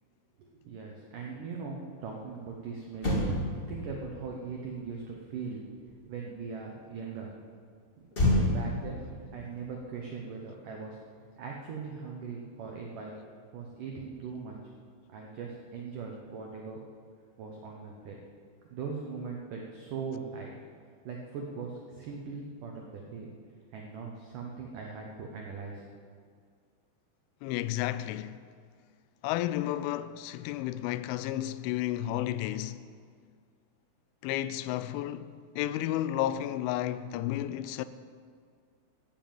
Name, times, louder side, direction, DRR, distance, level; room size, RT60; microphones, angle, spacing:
voice 1, 0.4-3.4 3.7-5.6 6.1-7.3 8.3-9.0 9.3-11.0 11.4-13.2 13.5-14.6 15.1-16.8 17.4-18.2 18.7-20.5 21.0-23.3 23.7-25.9, right 5 dB, 85° right, 1.8 m, -40 dB
Motor vehicle (road), 2.5-2.6 2.9-6.5 8.1-10.7 11.0-11.2, left 1 dB, 40° left, 0.8 m, -32 dB
voice 2, 27.4-28.4 29.2-32.8 34.2-37.9, left 13 dB, 85° left, 2.9 m, -32 dB
14.5 x 7.6 x 9.0 m
omnidirectional pair, 5.6 m